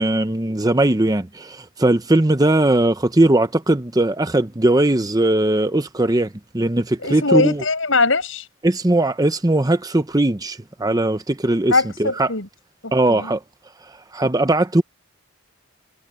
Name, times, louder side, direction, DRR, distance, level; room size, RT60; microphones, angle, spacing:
voice 1, 0.0-7.6 8.6-11.7 12.0-12.3 12.9-13.4 14.1-14.8, right 1 dB, 20° right, 0.8 m, -19 dB
voice 2, 7.0-8.5 11.7-12.5 12.8-13.3, left 3 dB, 75° left, 6.5 m, -21 dB
head